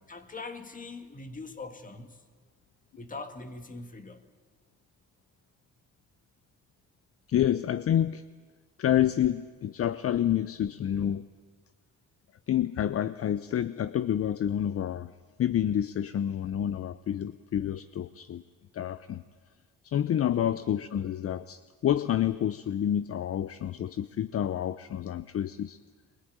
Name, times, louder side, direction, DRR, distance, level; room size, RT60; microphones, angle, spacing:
voice 1, 0.1-2.3 3.0-4.2, left 3 dB, 25° left, 8 dB, 2.0 m, -42 dB
voice 2, 7.3-8.2 8.8-11.3 12.5-15.1 15.4-18.4 18.7-19.2 19.8-25.8, left 10 dB, 50° left, 15 dB, 0.7 m, -28 dB
23.0 x 19.0 x 9.4 m, 1.5 s
cardioid pair, 90°, 30 cm